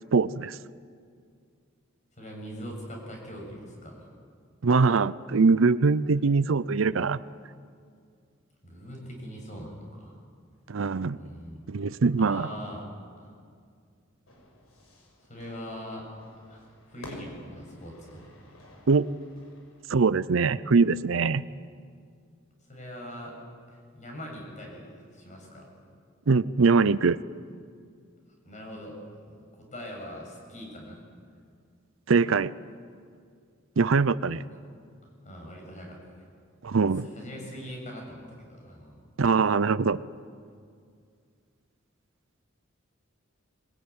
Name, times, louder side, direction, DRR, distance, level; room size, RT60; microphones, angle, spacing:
voice 1, 0.1-0.6 4.6-7.2 10.7-11.2 11.7-12.5 18.9-19.1 19.9-21.4 26.3-27.2 32.1-32.5 33.8-34.4 36.6-37.1 39.2-40.0, right 4 dB, 65° right, 17 dB, 0.6 m, -22 dB
voice 2, 2.2-4.1 8.6-10.1 11.2-11.6 12.2-12.9 13.2-13.3 15.3-16.1 16.5-18.2 22.7-23.4 23.7-25.7 28.4-31.0 34.5-34.6 35.2-36.2 37.0-39.0, equal, 35° left, 0 dB, 7.1 m, -42 dB
Fire / Fireworks, 14.3-19.8, left 1 dB, 85° left, 6.2 m, -51 dB
23.0 x 21.5 x 9.7 m, 2.2 s
head